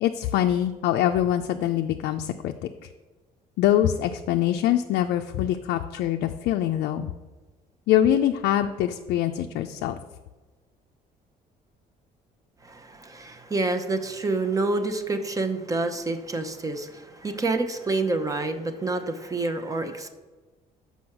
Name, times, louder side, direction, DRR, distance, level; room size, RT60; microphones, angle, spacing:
voice 1, 0.0-2.5 3.6-7.1 7.9-10.0, left 11 dB, 75° left, 5 dB, 0.4 m, -24 dB
voice 2, 12.6-20.1, right 3 dB, 20° right, 8 dB, 0.7 m, -28 dB
6.2 x 5.6 x 5.9 m, 1.3 s
cardioid pair, 110°, 17 cm